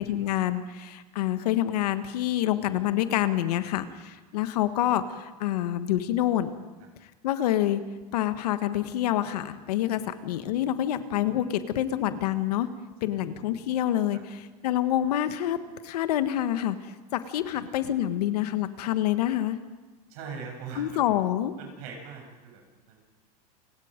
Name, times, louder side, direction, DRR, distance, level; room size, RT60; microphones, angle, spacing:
voice 1, 0.0-6.6 7.2-7.8 8.1-12.7 13.0-19.6 20.8-21.5, left 12 dB, 85° left, 10 dB, 1.5 m, -27 dB
voice 2, 20.1-21.0 21.6-23.0, right 5 dB, 70° right, 1 dB, 7.9 m, -42 dB
29.0 x 19.0 x 5.2 m, 1.2 s
supercardioid pair, 125°, 20 cm